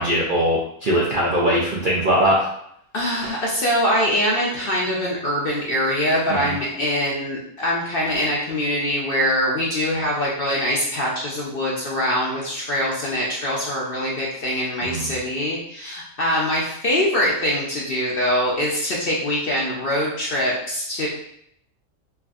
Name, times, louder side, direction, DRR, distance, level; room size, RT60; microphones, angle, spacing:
voice 1, 0.0-2.5 6.3-6.5 14.8-15.1, equal, 60° right, -4 dB, 0.5 m, -21 dB
voice 2, 2.9-21.1, equal, 50° left, -4 dB, 0.7 m, -23 dB
4.5 x 2.5 x 2.4 m, 0.71 s
omnidirectional pair, 1.5 m